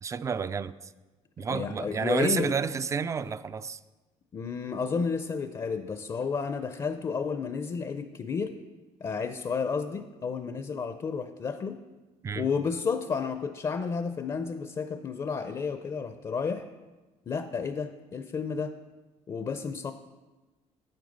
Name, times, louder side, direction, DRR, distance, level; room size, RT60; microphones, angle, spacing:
voice 1, 0.0-0.8 1.4-3.8 12.2-12.5, right 6 dB, 25° right, 15 dB, 0.3 m, -30 dB
voice 2, 1.5-2.5 4.3-8.5 9.0-11.8 12.4-16.7 17.3-18.7 19.3-19.9, left 5 dB, 35° left, 9 dB, 0.5 m, -31 dB
8.6 x 7.8 x 5.4 m, 1.2 s
cardioid pair, 110°, 12 cm